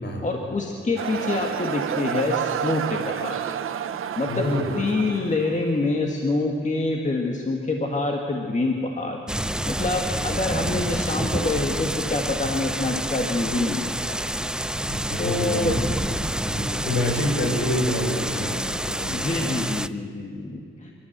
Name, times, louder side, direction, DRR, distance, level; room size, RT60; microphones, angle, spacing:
voice 1, 0.2-3.4 4.2-4.5 4.8-9.2 9.7-14.2 15.2-15.8 19.1-20.9, left 2 dB, 35° left, 1 dB, 1.8 m, -26 dB
sound 1, 1.0-5.8, right 9 dB, 85° right, 0.8 m, -30 dB
voice 2, 4.3-4.7 10.0-10.7 14.9-15.9 16.5-19.5, left 1 dB, 60° left, 1 dB, 5.6 m, -27 dB
sound 2, 9.3-19.9, right 1 dB, 5° right, 0.5 m, -28 dB
27.5 x 13.5 x 8.0 m, 2.4 s
cardioid pair, 90°, 21 cm